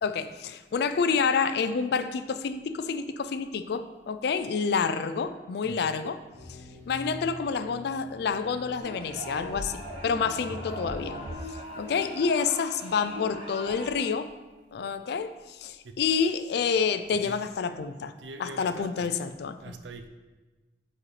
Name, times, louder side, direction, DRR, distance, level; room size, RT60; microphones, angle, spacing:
voice 1, 0.0-6.2 6.5-6.6 6.9-11.2 11.5-14.3 14.7-18.1 18.4-19.7, left 5 dB, 60° left, 10 dB, 0.3 m, -28 dB
sound 1, 6.3-11.3, equal, 25° left, 1.2 m, -45 dB
sound 2, 8.8-14.1, equal, 30° right, 1.5 m, -40 dB
voice 2, 18.2-19.1 19.6-20.1, right 3 dB, 85° right, 7 dB, 0.5 m, -42 dB
7.3 x 4.2 x 3.2 m, 1.2 s
head